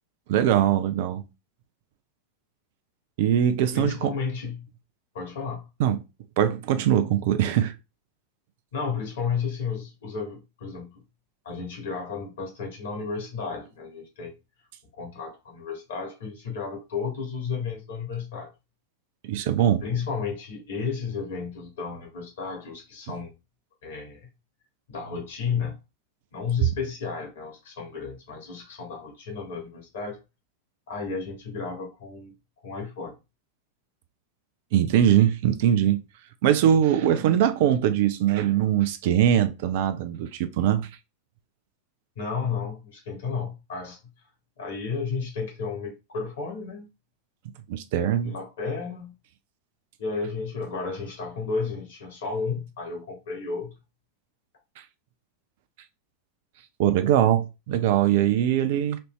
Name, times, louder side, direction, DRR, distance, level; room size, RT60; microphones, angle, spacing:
voice 1, 0.3-1.2 3.2-4.1 5.8-6.0 6.4-7.7 19.2-19.8 34.7-36.0 36.4-40.9 47.7-48.3 56.8-59.0, right 10 dB, 50° right, 0.5 m, -22 dB
voice 2, 3.7-4.6 5.1-5.7 8.7-11.0 11.4-14.3 14.9-18.5 19.8-23.3 23.8-24.3 24.9-25.8 26.3-30.2 30.9-32.3 32.6-33.2 42.2-44.0 44.6-46.9 48.2-49.1 50.0-53.7, left 5 dB, 60° left, 1.7 m, -32 dB
4.3 x 2.7 x 3.1 m
figure-of-eight pair, 90°, 0 cm